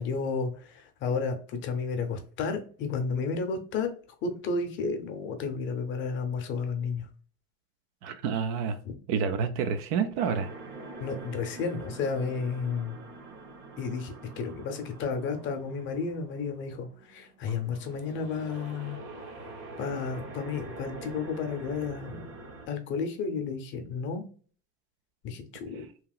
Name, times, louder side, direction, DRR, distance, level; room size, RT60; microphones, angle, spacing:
voice 1, 0.0-3.9 4.2-7.1 8.8-9.0 11.0-13.0 13.8-19.0 19.8-22.3 22.7-24.2 25.2-25.8, left 5 dB, 40° left, 6 dB, 0.6 m, -32 dB
voice 2, 8.0-8.8 9.1-10.5, right 6 dB, 70° right, 9 dB, 0.5 m, -28 dB
sound 1, 10.2-22.7, right 2 dB, 40° right, 0.8 m, -45 dB
2.9 x 2.8 x 2.3 m, 0.42 s
cardioid pair, 145°, 30 cm